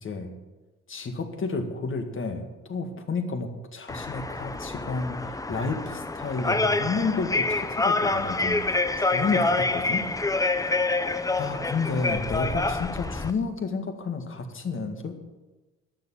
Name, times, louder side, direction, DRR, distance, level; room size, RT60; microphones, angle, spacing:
voice 1, 0.0-0.3 0.9-10.1 11.3-15.2, left 4 dB, 40° left, 6 dB, 1.8 m, -31 dB
sound 1, 3.9-13.3, left 3 dB, 10° left, 0.6 m, -27 dB
12.0 x 6.9 x 8.7 m, 1.1 s
cardioid pair, 90°, 30 cm